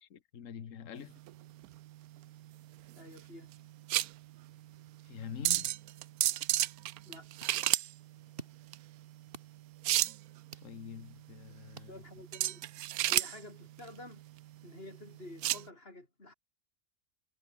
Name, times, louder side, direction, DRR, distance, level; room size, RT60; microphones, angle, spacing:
voice 1, 0.0-1.2 5.0-5.7 10.6-12.0, left 7 dB, 60° left, 1.6 m, -45 dB
sound 1, 1.0-15.7, right 15 dB, 75° right, 1.0 m, -34 dB
voice 2, 3.0-3.5 7.1-7.3 11.9-12.8 13.1-14.2 14.6-16.3, left 2 dB, 40° left, 5.4 m, -50 dB
sound 2, 6.9-12.5, right 3 dB, 35° right, 2.6 m, -55 dB
omnidirectional pair, 1.6 m